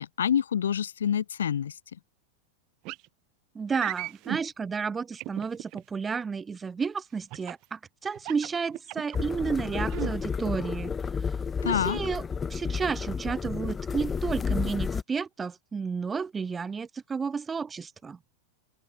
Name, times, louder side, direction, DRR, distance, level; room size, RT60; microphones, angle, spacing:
voice 1, 0.0-1.8 11.6-12.0, left 8 dB, 65° left, 1.1 m, -27 dB
sound 1, 2.9-3.1 3.7-4.4 5.2-5.8 7.3-7.6 8.1-9.2 9.7-10.1, right 22 dB, 40° right, 4.9 m, -36 dB
voice 2, 3.5-10.9 11.6-12.2 12.5-18.2, right 5 dB, 15° right, 1.3 m, -32 dB
sound 2, 9.1-15.0, left 5 dB, 15° left, 3.5 m, -31 dB
open air
figure-of-eight pair, 90°, 0 cm